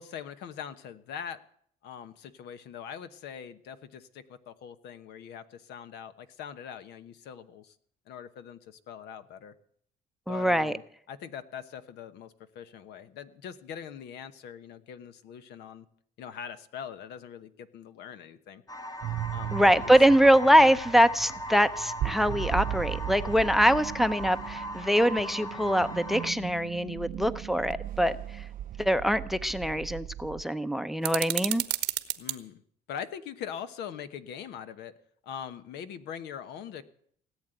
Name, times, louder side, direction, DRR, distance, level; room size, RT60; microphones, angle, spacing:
voice 1, 0.0-1.4 1.8-7.8 8.1-9.5 10.3-10.8 11.1-15.8 16.2-18.6 19.3-19.9 32.2-32.6 32.9-34.9 35.2-36.8, left 8 dB, 80° left, 11 dB, 1.1 m, -42 dB
voice 2, 10.3-10.7 19.5-28.4 28.8-31.6, equal, ahead, 14 dB, 0.6 m, -23 dB
sound 1, 18.7-26.3, equal, 20° left, 1.2 m, -39 dB
sound 2, 19.0-30.4, right 13 dB, 55° right, 0.6 m, -37 dB
sound 3, 31.0-32.4, right 15 dB, 90° right, 1.1 m, -31 dB
17.5 x 8.3 x 9.0 m, 0.64 s
cardioid pair, 110°, 17 cm